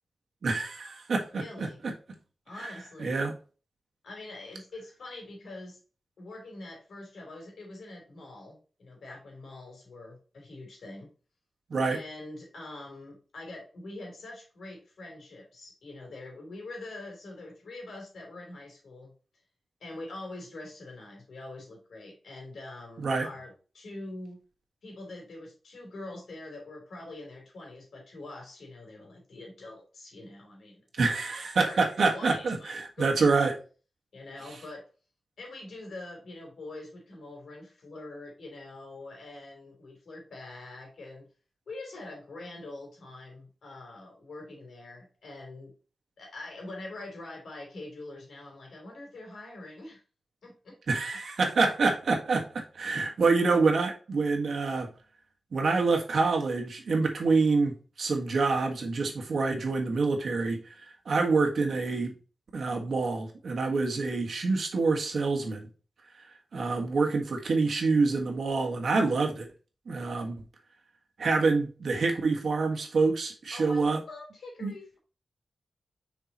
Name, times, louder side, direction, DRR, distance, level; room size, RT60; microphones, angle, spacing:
voice 1, 0.4-1.9 2.6-2.7 3.0-3.3 11.7-12.0 23.0-23.3 31.0-33.6 50.9-54.9 55.5-62.1 62.5-65.7 66.5-69.5 69.9-70.4 71.2-74.0 74.6-74.7, right 4 dB, 60° right, 1.5 m, -27 dB
voice 2, 1.3-1.8 2.5-3.2 4.0-5.8 6.2-11.1 11.9-19.1 19.8-24.4 24.8-33.3 34.1-34.9 35.4-41.3 41.7-45.7 46.2-50.0 50.4-50.8 73.5-75.0, left 2 dB, 85° left, 3.1 m, -44 dB
6.6 x 4.8 x 3.0 m
wide cardioid pair, 180°, 0 cm